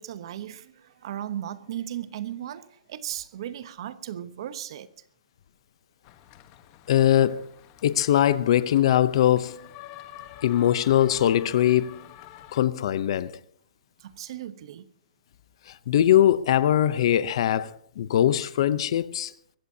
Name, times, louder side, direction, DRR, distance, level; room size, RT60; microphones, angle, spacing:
voice 1, 0.0-4.9 14.0-14.9 18.8-18.9, right 11 dB, 45° right, 0.9 m, -36 dB
sound 1, 6.0-12.6, left 12 dB, 25° left, 1.1 m, -48 dB
voice 2, 6.9-7.4 7.8-9.6 10.4-12.0 12.5-13.3 15.7-19.3, left 11 dB, 45° left, 0.7 m, -21 dB
23.0 x 15.5 x 2.8 m
hypercardioid pair, 170°, 4 cm